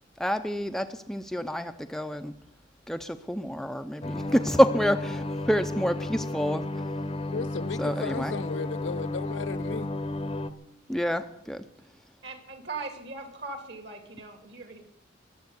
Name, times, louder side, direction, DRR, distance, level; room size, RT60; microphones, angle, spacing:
voice 1, 0.2-2.3 2.9-6.7 7.8-8.3 10.9-11.7, equal, ahead, 0.5 m, -27 dB
sound 1, 4.0-10.5, left 2 dB, 30° left, 0.8 m, -33 dB
voice 2, 7.3-9.9, left 5 dB, 70° left, 0.5 m, -35 dB
voice 3, 12.2-14.8, right 3 dB, 60° right, 2.7 m, -39 dB
21.5 x 7.8 x 8.1 m
head